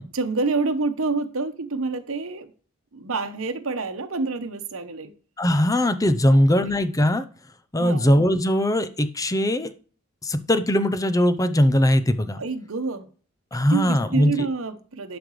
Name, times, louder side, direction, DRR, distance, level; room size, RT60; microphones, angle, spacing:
voice 1, 0.1-2.5 2.9-5.1 6.3-6.4 7.7-8.1 12.4-13.1 13.7-15.2, right 3 dB, 80° right, 9 dB, 1.0 m, -27 dB
voice 2, 5.4-7.2 7.7-9.7 10.2-12.4 13.5-14.3, equal, 15° left, 11 dB, 0.6 m, -20 dB
11.5 x 5.1 x 3.2 m, 0.39 s
head